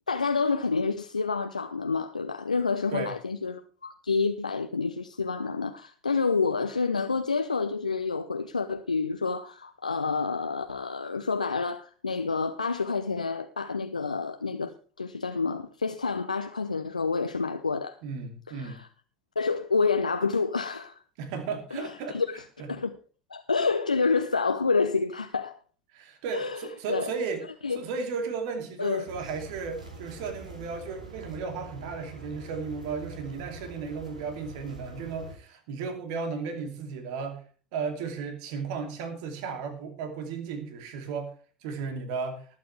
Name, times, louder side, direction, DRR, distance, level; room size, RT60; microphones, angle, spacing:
voice 1, 0.1-14.7 15.0-18.0 18.5-18.9 19.4-21.0 21.7-22.4 22.7-22.9 23.3-25.6 26.3-26.6 26.9-27.1 27.6-27.8 28.8-29.1, left 4 dB, 85° left, 0.7 m, -28 dB
voice 2, 18.0-18.8 21.2-22.2 22.6-22.7 25.9-27.4 27.7-37.4 37.7-41.3 41.6-42.5, right 5 dB, 60° right, 2.7 m, -34 dB
sound 1, 29.0-35.3, right 1 dB, 85° right, 2.9 m, -45 dB
19.5 x 8.8 x 3.4 m
figure-of-eight pair, 65°, 4 cm